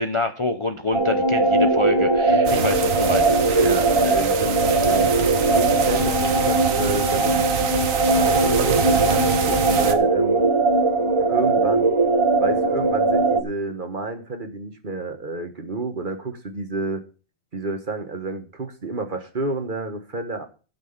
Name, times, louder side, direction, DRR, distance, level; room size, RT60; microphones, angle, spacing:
voice 1, 0.0-3.7, left 2 dB, 30° left, 7 dB, 0.6 m, -26 dB
sound 1, 0.9-13.4, right 3 dB, 25° right, 1.2 m, -20 dB
voice 2, 2.3-2.7 3.6-5.1 5.5-7.4 8.0-10.4 11.2-11.9 12.4-17.0 17.5-20.5, right 2 dB, 40° right, 6 dB, 1.5 m, -30 dB
sound 2, 2.4-9.9, right 7 dB, 75° right, 1.5 m, -27 dB
12.0 x 6.0 x 7.1 m, 0.37 s
omnidirectional pair, 1.4 m